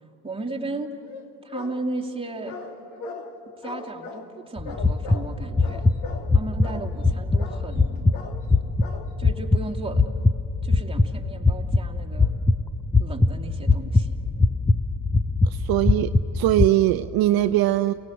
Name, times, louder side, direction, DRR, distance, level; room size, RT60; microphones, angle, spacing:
voice 1, 0.2-0.9 1.4-2.6 3.6-5.9 6.3-8.2 9.2-10.0 10.6-12.3 13.0-14.2, right 2 dB, 10° right, 0 dB, 2.6 m, -35 dB
sound 1, 1.0-1.8 2.4-3.3 3.6-4.3 4.6-5.3 5.6-6.3 6.6-6.9 7.4-7.8 8.1-8.5 8.8-9.1, left 3 dB, 60° left, 2.6 m, -38 dB
sound 2, 4.6-16.7, left 3 dB, 5° left, 0.5 m, -22 dB
voice 2, 15.4-17.9, right 14 dB, 50° right, 10 dB, 0.7 m, -21 dB
29.0 x 19.0 x 8.0 m, 2.9 s
hypercardioid pair, 80°, 45 cm